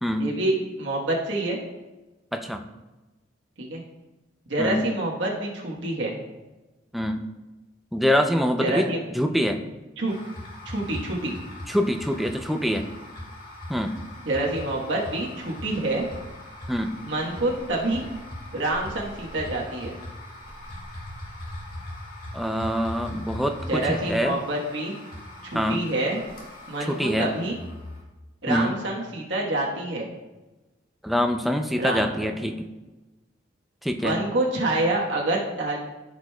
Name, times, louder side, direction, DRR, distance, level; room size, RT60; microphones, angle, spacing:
voice 1, 0.2-1.6 3.6-3.8 4.5-6.2 8.6-9.0 10.0-10.1 10.6-11.3 14.2-16.0 17.0-18.1 18.5-20.0 23.7-24.9 25.4-26.2 26.7-27.5 28.4-30.1 31.8-32.3 34.0-35.8, right 2 dB, 75° right, -3 dB, 1.3 m, -27 dB
voice 2, 2.3-2.6 4.6-4.9 5.8-5.9 6.9-7.2 7.9-8.9 9.1-9.6 11.7-12.8 13.7-14.0 16.7-16.9 22.3-24.3 25.5-25.8 26.9-27.3 28.5-28.7 31.0-32.7 33.8-34.2, equal, ahead, 5 dB, 0.4 m, -25 dB
sound 1, 10.1-28.0, left 1 dB, 45° left, 1.9 m, -40 dB
14.0 x 5.0 x 2.3 m, 1.1 s
head